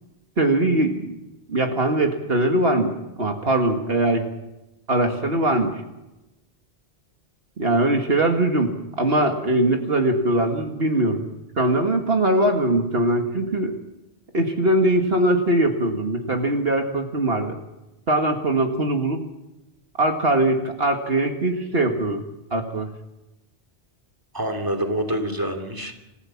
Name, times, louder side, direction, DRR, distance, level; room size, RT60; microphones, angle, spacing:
voice 1, 0.4-1.2 1.5-2.9 3.2-4.3 4.9-5.7 7.6-11.2 11.6-13.7 14.3-17.5 18.1-19.2 20.0-22.2 22.5-22.9, right 1 dB, 65° right, 4 dB, 2.2 m, -21 dB
voice 2, 24.3-26.0, right 1 dB, 20° right, 4 dB, 2.8 m, -26 dB
27.5 x 15.0 x 7.3 m, 0.97 s
omnidirectional pair, 1.1 m